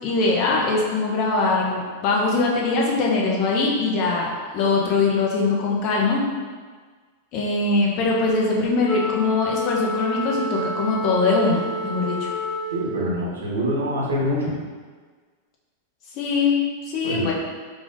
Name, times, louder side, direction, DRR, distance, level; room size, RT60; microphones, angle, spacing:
voice 1, 0.0-6.2 7.3-12.3 16.1-17.3, left 3 dB, 40° left, -2 dB, 0.9 m, -22 dB
Wind instrument woodwind instrument, 8.8-13.2, equal, 20° left, 0.5 m, -28 dB
voice 2, 12.7-14.6 17.0-17.3, equal, 70° right, -4 dB, 1.1 m, -25 dB
4.8 x 2.6 x 3.7 m, 1.5 s
figure-of-eight pair, 90°, 0 cm